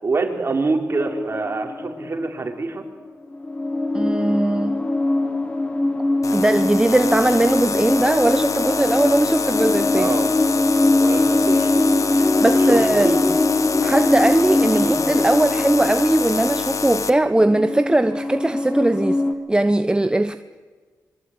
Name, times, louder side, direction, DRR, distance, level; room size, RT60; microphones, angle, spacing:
voice 1, 0.0-2.8 9.9-10.2 11.0-13.2 14.7-14.9, right 3 dB, 35° right, 4 dB, 4.7 m, -26 dB
sound 1, 1.0-2.9 3.3-19.3, left 2 dB, 20° left, 3.1 m, -22 dB
voice 2, 3.9-4.8 6.3-10.1 12.4-13.2 13.8-19.2 19.5-20.3, right 1 dB, 15° right, 10 dB, 1.0 m, -19 dB
sound 2, 6.2-17.1, left 5 dB, 50° left, 1.5 m, -27 dB
26.5 x 23.0 x 9.8 m, 1.4 s
cardioid pair, 85°, 7 cm